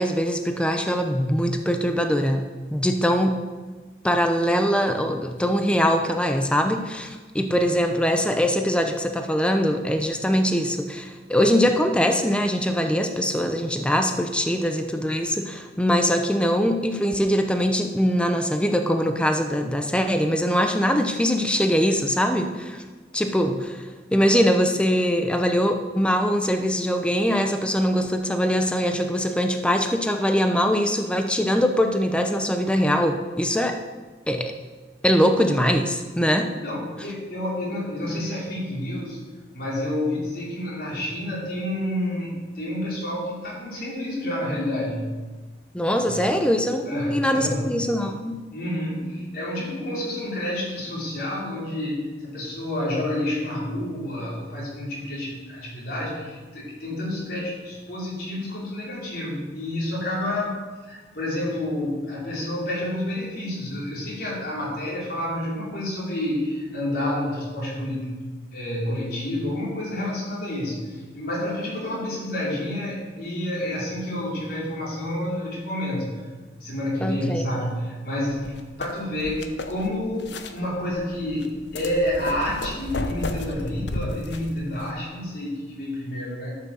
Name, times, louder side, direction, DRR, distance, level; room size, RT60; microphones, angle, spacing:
voice 1, 0.0-2.4 2.7-3.4 4.0-22.8 23.1-33.8 34.3-34.5 35.0-36.5 45.7-48.4 77.0-77.4, equal, 5° left, 5 dB, 0.7 m, -22 dB
voice 2, 36.5-39.2 39.5-45.0 46.0-46.3 46.9-47.8 48.5-68.2 68.5-76.2 76.5-86.6, left 1 dB, 60° left, -6 dB, 4.3 m, -29 dB
sound 1, 78.4-84.9, left 2 dB, 85° left, 0.9 m, -34 dB
13.0 x 6.3 x 7.0 m, 1.3 s
head